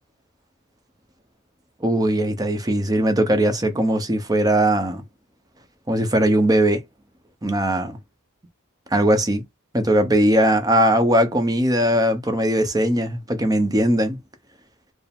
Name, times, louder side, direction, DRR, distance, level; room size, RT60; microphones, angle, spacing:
voice 1, 1.8-5.0 5.9-6.8 7.4-8.0 8.9-9.4 9.7-14.2, right 1 dB, 15° right, 0.7 m, -19 dB
4.6 x 2.1 x 3.5 m
head